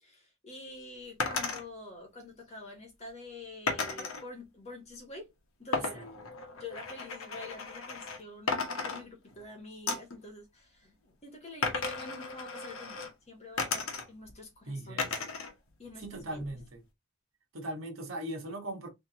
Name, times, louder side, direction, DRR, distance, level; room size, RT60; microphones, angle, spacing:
voice 1, 0.0-5.3 5.6-6.1 6.5-15.2 15.8-16.4, left 2 dB, 30° left, 1.7 m, -47 dB
sound 1, 1.2-1.6 3.7-4.2 5.7-8.2 8.5-9.4 9.9-10.2 11.6-13.1 13.6-14.3 15.0-15.5 15.9-16.7, left 4 dB, 80° left, 1.1 m, -35 dB
voice 2, 5.7-6.3 14.7-15.3 16.0-16.8 17.5-18.9, right 1 dB, 70° right, 1.6 m, -39 dB
3.6 x 3.4 x 2.9 m
head